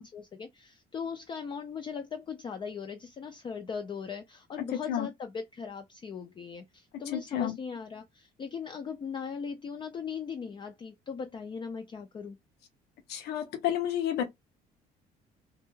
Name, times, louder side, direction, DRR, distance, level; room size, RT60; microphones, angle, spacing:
voice 1, 0.0-12.4, left 6 dB, 30° left, 0.4 m, -39 dB
voice 2, 7.1-7.6 13.1-14.2, left 10 dB, 75° left, 0.6 m, -30 dB
2.3 x 2.1 x 3.0 m
cardioid pair, 110°, 17 cm